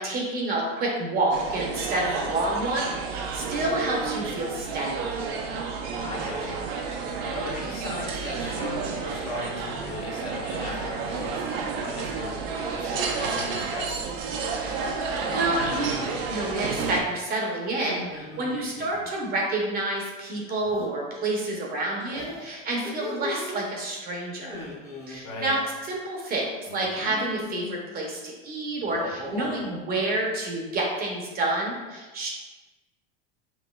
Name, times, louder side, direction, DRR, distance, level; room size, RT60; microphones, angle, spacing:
voice 1, 0.0-5.1 14.9-24.6 25.1-32.3, right 2 dB, 30° right, -1 dB, 0.8 m, -29 dB
sound 1, 1.3-17.0, right 4 dB, 65° right, 0.6 m, -31 dB
voice 2, 6.0-6.6 7.3-11.4 11.8-12.4 12.7-14.0 25.2-25.5, left 2 dB, 50° left, -3 dB, 1.1 m, -37 dB
sound 2, 11.4-11.8 12.1-12.6 14.4-15.6 17.7-19.1 20.5-20.9 22.1-23.6 24.4-25.2 26.7-27.8 28.7-29.8, left 2 dB, 10° left, 0.7 m, -39 dB
5.3 x 2.6 x 2.3 m, 1.2 s
supercardioid pair, 130°, 31 cm